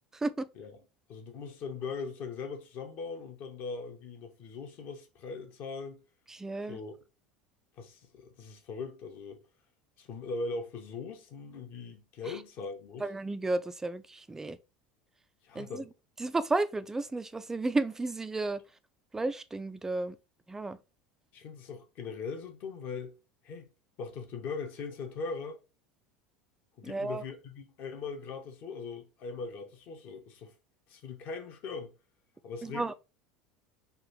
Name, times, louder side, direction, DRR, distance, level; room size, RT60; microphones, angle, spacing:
voice 1, 0.1-0.5 6.3-6.8 12.2-12.4 13.0-14.6 15.5-15.8 16.2-18.6 19.1-20.2 20.5-20.8 26.8-27.2 32.6-32.9, right 2 dB, 10° right, 0.3 m, -33 dB
voice 2, 1.1-6.0 6.7-6.9 7.8-9.4 10.0-13.1 15.4-15.9 21.3-23.1 23.4-23.7 24.0-25.6 26.8-30.6 30.9-31.9 32.4-32.9, left 4 dB, 45° left, 1.0 m, -40 dB
3.9 x 2.6 x 4.4 m
figure-of-eight pair, 75°, 4 cm